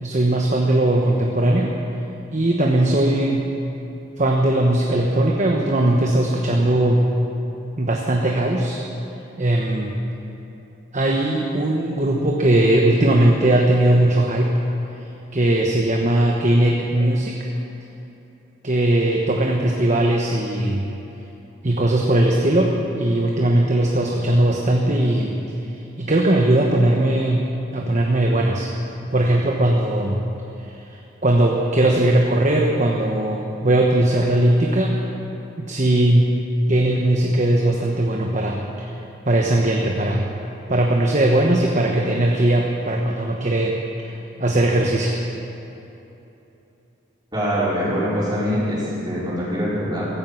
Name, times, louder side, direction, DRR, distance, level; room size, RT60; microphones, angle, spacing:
voice 1, 0.0-1.7 2.3-3.5 4.2-7.0 7.8-8.8 9.4-10.0 10.9-14.5 15.3-17.5 18.6-20.9 21.6-25.4 26.0-28.7 29.1-30.2 31.2-35.0 35.6-36.3 36.7-38.9 39.3-40.3 40.7-44.1 44.4-45.2, right 1 dB, 35° right, 0 dB, 1.1 m, -19 dB
voice 2, 47.3-50.1, equal, 20° right, -9 dB, 4.9 m, -23 dB
16.0 x 16.0 x 5.8 m, 3.0 s
head